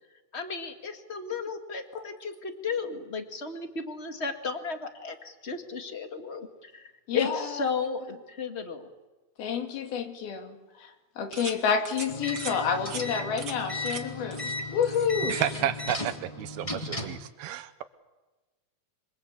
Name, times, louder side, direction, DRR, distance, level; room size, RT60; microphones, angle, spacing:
voice 1, 0.3-8.9, left 5 dB, 30° left, 6 dB, 1.2 m, -34 dB
voice 2, 7.1-7.6 9.4-10.9 11.2-15.4, left 6 dB, 80° left, 5 dB, 4.3 m, -29 dB
sound 1, 11.3-11.6 11.9-12.1 12.4-12.6 12.9-13.0 13.4-13.6 13.9-14.0 14.3-14.6 14.8-15.6 15.9-16.2, right 5 dB, 35° right, 2.0 m, -40 dB
sound 2, 12.1-17.2, left 2 dB, 10° left, 1.8 m, -35 dB
voice 3, 15.3-17.8, right 11 dB, 85° right, 12 dB, 3.0 m, -32 dB
27.0 x 24.5 x 8.4 m, 1.2 s
omnidirectional pair, 4.3 m